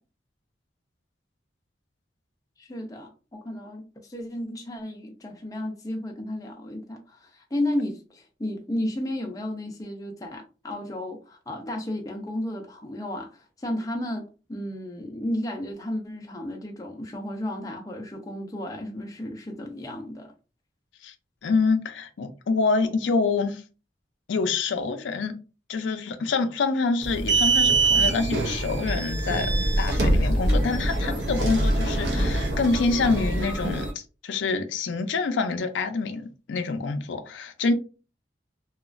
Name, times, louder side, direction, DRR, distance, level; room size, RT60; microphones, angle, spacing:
voice 1, 2.6-20.3 31.5-31.6, left 1 dB, 20° left, 0.5 m, -33 dB
voice 2, 21.4-23.6 24.3-25.4 25.7-29.5 29.8-37.7, left 4 dB, 80° left, 0.4 m, -26 dB
sound 1, 27.0-33.9, right 2 dB, 70° right, 0.6 m, -24 dB
2.9 x 2.3 x 2.4 m
head